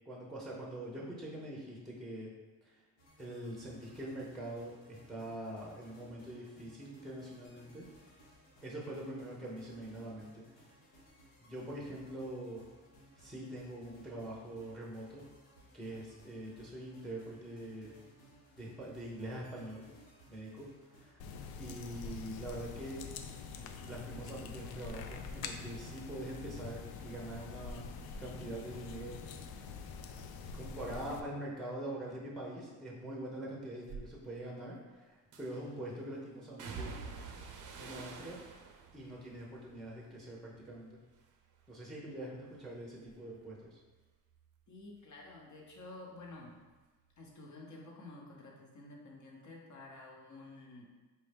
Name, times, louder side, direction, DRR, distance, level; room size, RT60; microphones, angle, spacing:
voice 1, 0.1-2.3 2.6-2.7 3.2-7.9 8.6-10.4 11.4-12.6 13.2-15.2 15.7-17.9 18.5-19.9 20.3-20.7 21.0-21.2 21.6-23.0 23.8-29.2 29.5-29.6 30.5-36.9 37.8-38.4 38.9-41.0 41.7-43.8, right 1 dB, ahead, -3 dB, 0.8 m, -44 dB
sound 1, 3.0-21.1, equal, 85° left, 1.1 m, -61 dB
sound 2, 21.2-31.2, left 5 dB, 60° left, 0.5 m, -45 dB
sound 3, 33.8-34.1 35.3-35.8 36.6-40.8 41.1-41.8 42.1-45.4 45.7-46.8 47.1-47.3, right 4 dB, 50° right, 0.6 m, -49 dB
voice 2, 44.7-46.5 47.2-50.9, left 2 dB, 45° left, -1 dB, 1.0 m, -51 dB
4.3 x 2.7 x 3.4 m, 1.3 s
supercardioid pair, 75°, 42 cm